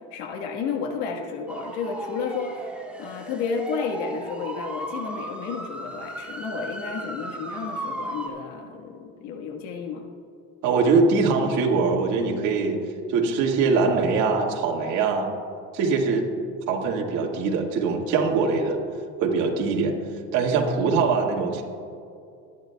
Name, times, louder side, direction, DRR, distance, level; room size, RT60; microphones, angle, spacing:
voice 1, 0.1-2.7 3.0-10.1, left 5 dB, 80° left, 4 dB, 1.5 m, -31 dB
sound 1, 1.5-8.3, right 1 dB, 5° right, 1.8 m, -36 dB
voice 2, 10.6-12.8 13.1-15.3 15.7-16.3 16.7-18.8 19.2-20.0 20.3-21.6, right 4 dB, 70° right, -1 dB, 2.0 m, -22 dB
23.0 x 10.5 x 2.3 m, 2.5 s
supercardioid pair, 100°, 30 cm